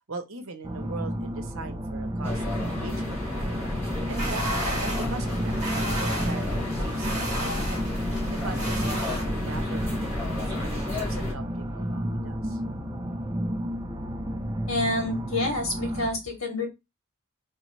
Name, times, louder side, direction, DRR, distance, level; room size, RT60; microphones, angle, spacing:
voice 1, 0.1-3.6 4.1-4.5 4.8-12.6, right 3 dB, 65° right, 0.9 m, -41 dB
sound 1, 0.6-16.1, equal, 20° right, 0.6 m, -32 dB
sound 2, 2.2-11.3, left 1 dB, 10° left, 2.7 m, -32 dB
sound 3, 4.1-9.2, equal, 35° right, 2.6 m, -33 dB
voice 2, 14.7-16.7, left 1 dB, 65° left, 2.3 m, -28 dB
4.0 x 3.6 x 3.1 m
head